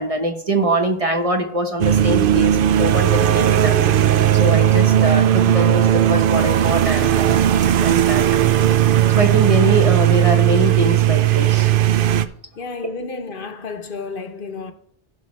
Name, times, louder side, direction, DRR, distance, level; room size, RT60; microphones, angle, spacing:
voice 1, 0.0-3.8 4.3-8.3 9.2-11.8, right 2 dB, 35° right, 1.2 m, -23 dB
sound 1, 1.8-12.2, right 11 dB, 65° right, 0.7 m, -16 dB
voice 2, 12.6-14.7, left 4 dB, 60° left, 0.9 m, -31 dB
15.5 x 5.9 x 3.2 m
omnidirectional pair, 1.0 m